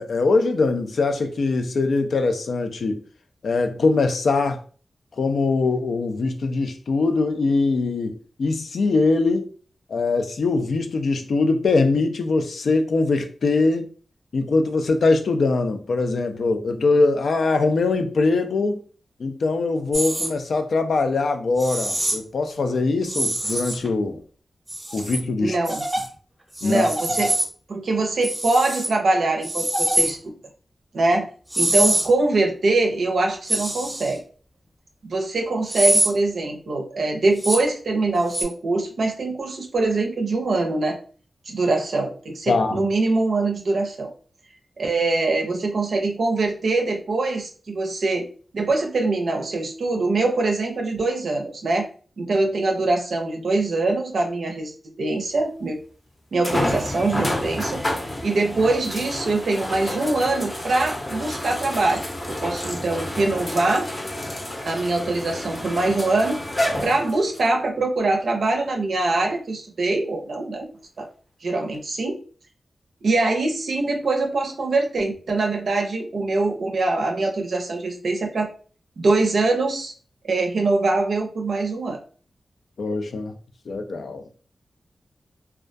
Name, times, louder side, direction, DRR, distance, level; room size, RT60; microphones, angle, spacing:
voice 1, 0.0-3.0 3.4-4.6 5.2-9.5 9.9-13.9 14.3-18.8 19.2-24.2 24.9-25.6 26.6-26.9 42.5-42.8 82.8-83.3 83.7-84.2, left 3 dB, 80° left, 0.3 m, -22 dB
sound 1, 19.9-20.3 21.6-22.1 23.1-23.9 24.7-25.2 25.6-26.1 26.5-27.4 28.2-28.9 29.4-30.1 31.5-32.1 33.5-34.1 35.7-36.1 37.4-37.6 38.3-38.4, right 1 dB, 15° right, 0.6 m, -24 dB
voice 2, 25.4-25.8 26.6-27.4 27.7-30.3 30.9-31.3 31.6-34.2 35.0-41.0 41.5-44.1 44.8-48.3 48.5-51.9 52.2-54.7 55.0-55.8 56.3-57.8 58.2-62.0 62.4-63.9 64.6-66.4 66.8-70.7 71.0-71.1 71.4-72.2 73.0-78.5 79.0-79.9 80.2-82.0, right 2 dB, 75° right, 0.5 m, -23 dB
sound 2, 55.4-55.5 56.4-67.5 68.2-68.3 71.7-71.8, left 1 dB, 30° left, 0.6 m, -29 dB
2.2 x 2.2 x 2.5 m
wide cardioid pair, 120°, 0 cm